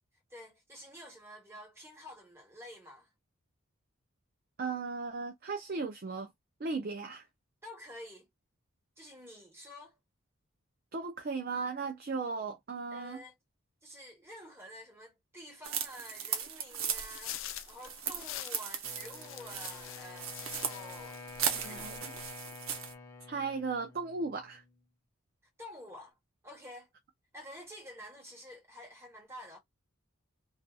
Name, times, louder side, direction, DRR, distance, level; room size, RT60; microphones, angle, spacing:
voice 1, 0.3-3.1 7.6-8.3 9.0-10.0 12.9-13.3 13.8-21.2 21.5-22.3 25.6-26.1 26.4-26.9 27.3-29.6, left 1 dB, 10° right, 1.2 m, -49 dB
voice 2, 4.6-6.3 6.6-7.2 10.9-13.2 21.6-22.1 23.3-24.6, right 4 dB, 45° right, 0.4 m, -36 dB
sound 1, 15.6-22.9, right 7 dB, 80° right, 0.8 m, -38 dB
sound 2, 16.9-21.2 21.5-22.0, left 12 dB, 70° left, 0.4 m, -45 dB
Wind instrument woodwind instrument, 18.8-24.8, left 3 dB, 15° left, 0.5 m, -49 dB
2.7 x 2.3 x 2.3 m
head